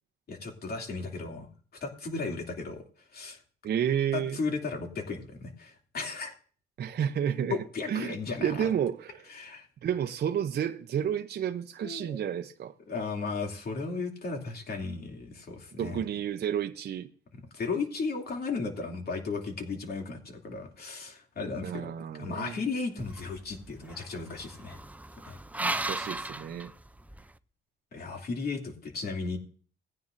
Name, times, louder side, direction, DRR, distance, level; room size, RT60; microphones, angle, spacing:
voice 1, 0.3-1.5 1.8-3.4 4.1-6.3 7.5-8.7 9.3-9.7 11.8-12.2 12.9-16.0 17.3-24.8 25.2-25.4 27.9-29.4, left 4 dB, 50° left, 2.7 m, -35 dB
voice 2, 3.6-4.4 6.8-7.6 7.9-8.1 8.4-9.2 9.8-12.7 15.8-17.1 21.6-22.6 25.6-26.7, right 9 dB, 55° right, 0.7 m, -31 dB
sound 1, 23.0-27.3, right 2 dB, 5° right, 0.5 m, -37 dB
18.5 x 9.6 x 2.6 m
cardioid pair, 90°, 20 cm